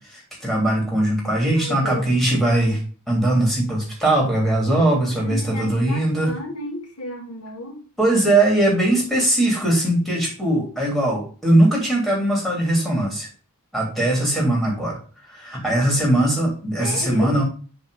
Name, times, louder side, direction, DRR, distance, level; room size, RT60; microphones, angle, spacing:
voice 1, 0.1-2.8 3.1-6.3 8.0-13.3 13.7-15.0 15.3-17.4, right 1 dB, ahead, -3 dB, 3.3 m, -20 dB
voice 2, 1.6-2.0 4.6-7.8 16.8-17.4, left 1 dB, 85° left, 0 dB, 2.4 m, -33 dB
7.7 x 4.3 x 4.9 m, 0.38 s
head